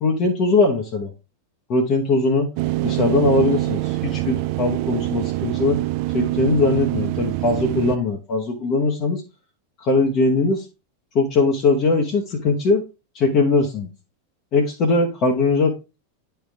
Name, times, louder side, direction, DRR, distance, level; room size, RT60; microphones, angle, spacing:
voice 1, 0.0-1.1 1.7-2.5 2.8-5.8 6.1-9.2 9.8-10.6 11.1-12.8 13.1-13.9 14.5-15.7, left 3 dB, 35° left, -1 dB, 1.0 m, -20 dB
sound 1, 2.6-8.0, right 18 dB, 45° right, 0.3 m, -24 dB
10.0 x 3.4 x 3.3 m, 0.28 s
figure-of-eight pair, 90°, 0 cm